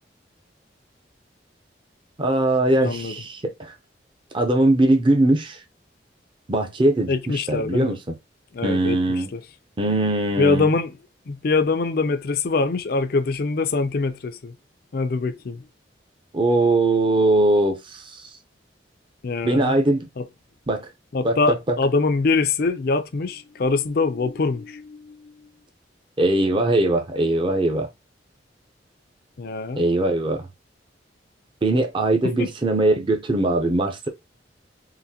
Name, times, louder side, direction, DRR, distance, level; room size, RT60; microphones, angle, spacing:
voice 1, 2.2-3.7 4.3-5.6 6.5-8.2 8.6-9.3 9.8-10.7 16.3-18.3 19.4-20.1 20.7-20.9 21.2-21.8 26.2-27.9 29.8-30.5 31.6-34.1, right 2 dB, 30° right, 0.5 m, -21 dB
voice 2, 2.8-3.2 7.1-7.9 8.5-9.4 10.4-11.0 11.3-14.5 14.9-15.6 19.2-19.8 20.2-20.3 21.1-25.3 29.4-29.8 32.2-32.5, left 3 dB, 55° left, 0.5 m, -24 dB
3.9 x 2.6 x 2.8 m
head